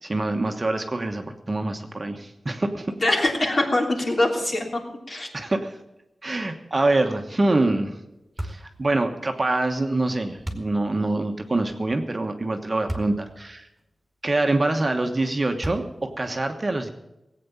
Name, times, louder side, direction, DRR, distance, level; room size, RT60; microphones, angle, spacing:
voice 1, 0.0-2.9 5.3-5.7 6.2-8.0 8.4-13.7 14.2-16.9, right 2 dB, 30° right, 4 dB, 1.2 m, -25 dB
voice 2, 3.0-4.8 5.1-5.3, left 1 dB, 45° left, 0 dB, 3.3 m, -23 dB
sound 1, 8.4-8.7 10.4-10.7 12.9-13.2 13.8-13.9 15.6-16.1, right 1 dB, 5° right, 2.3 m, -32 dB
18.5 x 8.6 x 7.0 m, 0.93 s
wide cardioid pair, 120°, 0 cm